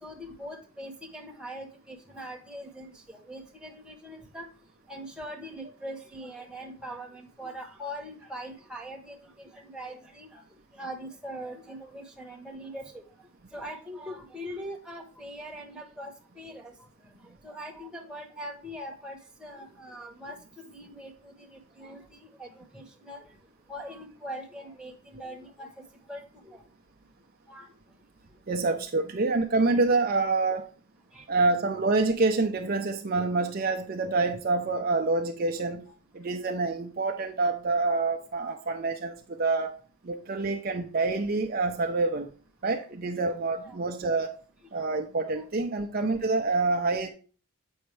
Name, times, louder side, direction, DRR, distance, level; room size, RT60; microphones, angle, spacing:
voice 1, 0.0-4.5 4.9-10.4 10.7-13.0 13.5-16.7 17.1-23.3 23.7-25.7 26.1-26.6 27.5-27.7 31.1-31.2 35.9-36.0 43.6-43.8 44.0-44.1 44.7-45.0, equal, 5° right, 1 dB, 1.0 m, -42 dB
voice 2, 28.5-30.7 31.3-35.9 36.1-42.3 42.6-44.4 44.7-47.1, right 3 dB, 40° right, 5 dB, 0.5 m, -27 dB
7.9 x 5.4 x 3.2 m, 0.39 s
head